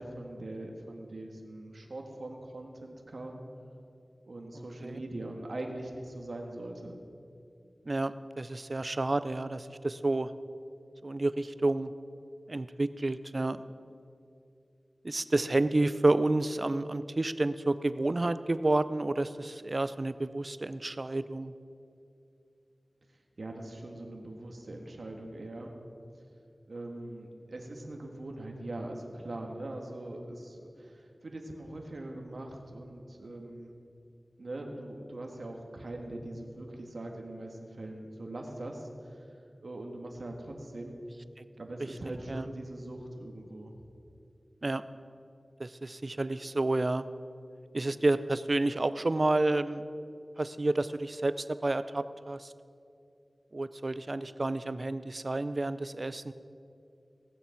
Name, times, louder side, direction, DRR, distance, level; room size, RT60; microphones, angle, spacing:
voice 1, 0.0-3.4 4.2-7.0 23.4-25.7 26.7-33.7 34.4-39.3 39.6-40.9 41.6-43.7, right 1 dB, 80° right, 2 dB, 1.6 m, -41 dB
voice 2, 7.9-10.3 11.0-11.9 12.5-13.6 15.0-21.5 42.1-42.5 44.6-44.8 45.6-47.1 47.7-49.8 50.4-52.5 53.5-56.3, right 2 dB, 50° right, 14 dB, 0.5 m, -30 dB
18.5 x 7.2 x 5.8 m, 2.5 s
wide cardioid pair, 50°, 0 cm